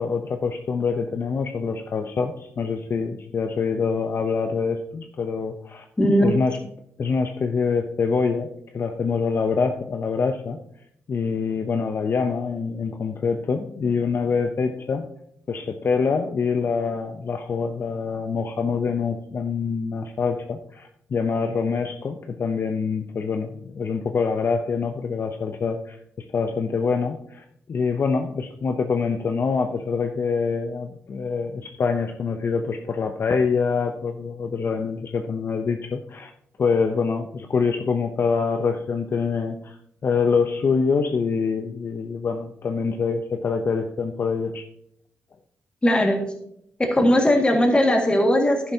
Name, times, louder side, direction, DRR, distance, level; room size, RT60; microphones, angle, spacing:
voice 1, 0.0-5.8 6.2-6.6 7.0-8.5 8.7-10.6 11.1-15.1 15.5-36.3 36.6-39.8 40.0-44.7, left 5 dB, 50° left, 5 dB, 0.6 m, -25 dB
voice 2, 6.0-6.4 45.8-46.3 46.8-48.7, equal, 20° left, 2 dB, 1.9 m, -19 dB
11.5 x 10.5 x 2.8 m, 0.72 s
cardioid pair, 95°, 5 cm